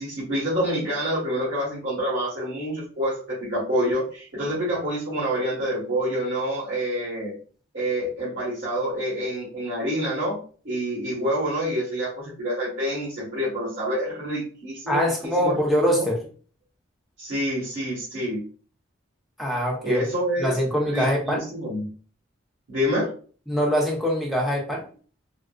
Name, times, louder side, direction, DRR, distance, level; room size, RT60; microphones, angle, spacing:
voice 1, 0.0-7.3 7.7-10.4 10.6-15.6 15.9-16.0 17.2-18.4 19.8-21.9 22.7-23.1, equal, 60° right, -9 dB, 1.2 m, -27 dB
voice 2, 14.9-16.2 19.4-20.0 20.4-21.4 23.5-24.8, equal, ahead, -1 dB, 0.6 m, -23 dB
3.5 x 2.0 x 2.4 m, 0.40 s
head